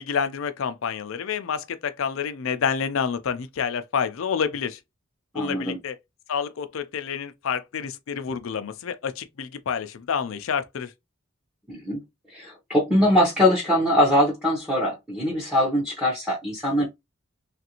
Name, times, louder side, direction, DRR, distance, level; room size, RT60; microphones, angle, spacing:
voice 1, 0.0-4.8 5.3-6.0 6.3-10.9, left 7 dB, 65° left, 0.4 m, -28 dB
voice 2, 5.3-5.8 11.7-12.0 12.3-16.9, equal, 5° right, 0.7 m, -22 dB
3.2 x 2.5 x 2.8 m
head